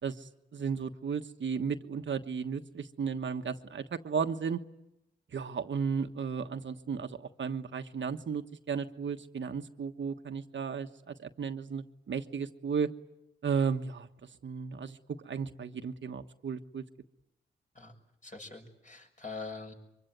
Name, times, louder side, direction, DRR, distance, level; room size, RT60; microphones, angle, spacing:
voice 1, 0.0-4.6 5.3-12.9 13.4-14.1 14.4-15.0 15.2-16.8, right 6 dB, 70° right, 7 dB, 1.4 m, -34 dB
voice 2, 18.2-19.7, left 3 dB, 40° left, 4 dB, 7.2 m, -43 dB
24.0 x 24.0 x 9.3 m, 0.87 s
cardioid pair, 55°, 20 cm